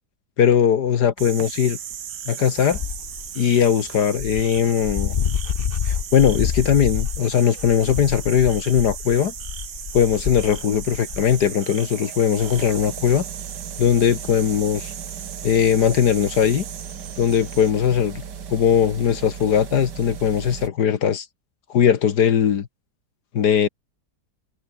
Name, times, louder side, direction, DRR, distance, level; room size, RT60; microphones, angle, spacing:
voice 1, 0.4-1.8 2.3-2.8 3.4-5.1 5.9-9.3 9.9-13.2 13.8-14.9 15.4-16.7 17.2-18.2 18.5-21.3 21.7-22.7 23.3-23.7, left 8 dB, 65° left, 1.8 m, -19 dB
sound 1, 1.2-17.7, right 9 dB, 85° right, 2.0 m, -37 dB
Dog, 2.7-3.3 3.9-4.0 4.2-11.5, left 8 dB, 50° left, 0.7 m, -28 dB
sound 2, 10.5-20.7, right 7 dB, 70° right, 2.3 m, -37 dB
omnidirectional pair, 1.9 m